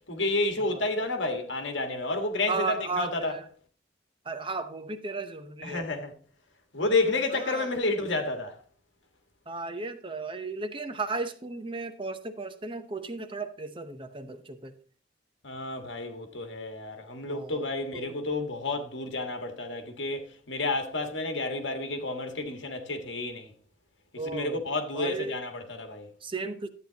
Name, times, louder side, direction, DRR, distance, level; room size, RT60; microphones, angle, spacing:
voice 1, 0.1-3.3 5.6-6.1 6.7-8.6 15.4-23.5 24.2-26.1, left 2 dB, 65° left, 1.6 m, -30 dB
voice 2, 2.5-3.5 4.2-5.8 7.3-7.7 9.5-14.7 17.3-17.7 17.9-18.2 24.2-24.6 24.9-25.4 26.2-26.7, right 3 dB, 25° right, 0.7 m, -35 dB
11.5 x 8.6 x 2.9 m
head